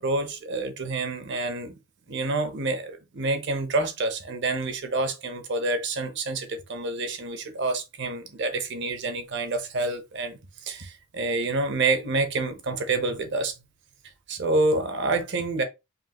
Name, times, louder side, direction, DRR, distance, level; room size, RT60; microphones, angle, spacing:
voice 1, 0.0-1.8 2.1-13.5 14.3-15.6, right 2 dB, 55° right, 0.9 m, -28 dB
5.3 x 2.7 x 2.9 m
head